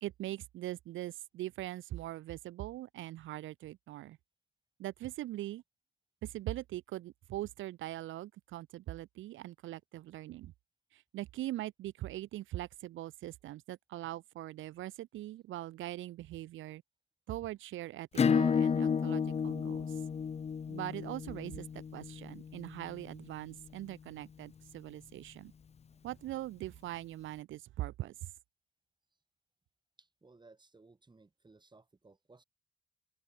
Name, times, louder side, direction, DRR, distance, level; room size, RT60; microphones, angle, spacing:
voice 1, 0.0-4.2 4.8-5.6 6.2-10.5 10.9-16.8 17.3-20.0 20.7-25.5 26.0-28.3, right 15 dB, 80° right, 0.9 m, -42 dB
Acoustic guitar / Strum, 18.1-23.4, left 6 dB, 30° left, 0.7 m, -32 dB
voice 2, 30.0-32.4, right 3 dB, 20° right, 7.4 m, -61 dB
open air
cardioid pair, 90°, 20 cm